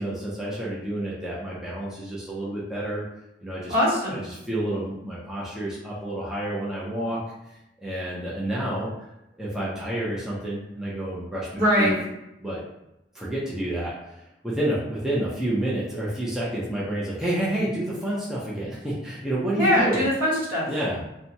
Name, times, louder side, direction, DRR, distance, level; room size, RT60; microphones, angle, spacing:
voice 1, 0.0-3.0 3.4-3.7 4.1-7.2 7.8-8.9 9.4-11.9 12.4-12.6 13.1-20.1 20.6-21.0, right 1 dB, 5° right, -7 dB, 0.5 m, -29 dB
voice 2, 3.7-4.2 11.6-11.9 19.6-20.7, equal, 50° right, -6 dB, 1.1 m, -21 dB
2.8 x 2.2 x 2.7 m, 0.90 s
head